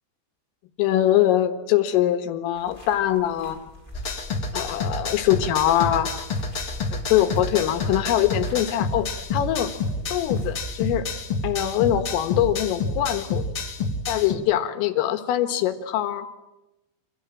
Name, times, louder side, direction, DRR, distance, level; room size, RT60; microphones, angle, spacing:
voice 1, 0.8-3.6 4.5-6.1 6.9-9.7 10.1-11.1 11.4-13.5 14.1-16.4, left 12 dB, 90° left, 8 dB, 4.2 m, -23 dB
sound 1, 2.5-10.8, left 1 dB, 10° left, 5.2 m, -43 dB
sound 2, 3.9-14.4, left 3 dB, 40° left, 2.2 m, -29 dB
28.5 x 26.5 x 7.5 m, 0.97 s
omnidirectional pair, 5.7 m